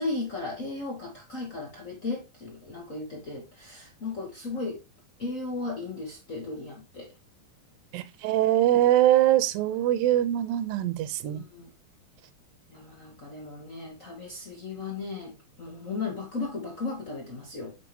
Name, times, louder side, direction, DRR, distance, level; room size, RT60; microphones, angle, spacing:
voice 1, 0.0-4.8 5.2-7.1 11.2-11.7 12.7-17.8, left 3 dB, 65° left, 0.7 m, -36 dB
voice 2, 7.9-11.4, right 13 dB, 85° right, 2.5 m, -23 dB
7.4 x 5.3 x 2.9 m
omnidirectional pair, 4.0 m